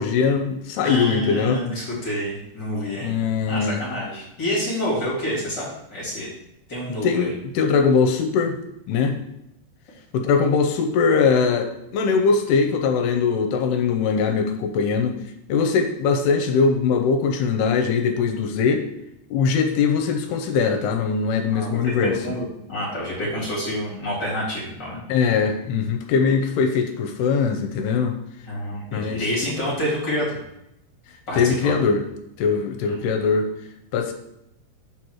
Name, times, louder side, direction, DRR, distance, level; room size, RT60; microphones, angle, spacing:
voice 1, 0.0-1.6 3.0-3.8 7.0-8.6 8.9-9.2 10.1-15.2 15.5-18.9 19.3-22.1 25.1-28.1 28.9-29.3 31.4-32.0 32.4-33.5 33.9-34.1, left 5 dB, 80° left, 5 dB, 2.6 m, -21 dB
voice 2, 0.8-5.6 5.9-6.3 6.7-7.3 21.5-25.0 28.5-30.4 31.3-31.7 32.8-33.0, equal, 30° left, -5 dB, 3.0 m, -28 dB
7.2 x 4.6 x 6.3 m, 0.83 s
omnidirectional pair, 4.9 m